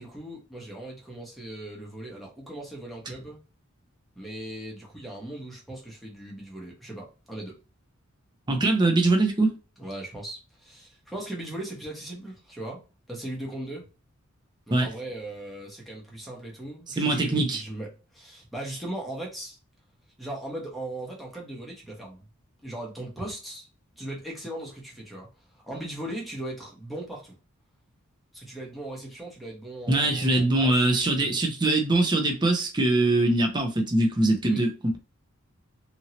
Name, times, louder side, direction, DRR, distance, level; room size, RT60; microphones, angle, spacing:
voice 1, 0.0-3.4 4.2-7.6 9.8-12.8 13.1-13.9 14.7-19.6 20.2-22.2 22.6-23.7 24.0-25.3 25.5-27.3 28.3-31.4 34.5-34.6, right 1 dB, ahead, 0.9 m, -38 dB
voice 2, 8.5-9.6 14.7-14.9 17.0-17.6 29.9-35.0, right 2 dB, 20° right, 0.6 m, -22 dB
2.8 x 2.7 x 2.8 m
head